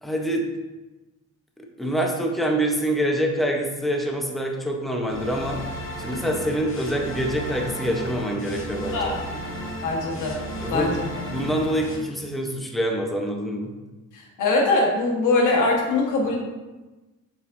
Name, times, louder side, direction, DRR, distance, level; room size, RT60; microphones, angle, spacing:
voice 1, 0.0-0.5 1.6-5.6 6.0-9.2 10.6-11.0 11.3-13.7, right 1 dB, ahead, 1 dB, 0.9 m, -26 dB
sound 1, 5.1-11.9, equal, 45° left, 2.1 m, -34 dB
voice 2, 9.8-10.4 10.7-11.1 14.1-16.4, left 2 dB, 85° left, -1 dB, 1.4 m, -22 dB
7.1 x 5.4 x 2.7 m, 1.1 s
cardioid pair, 90°, 30 cm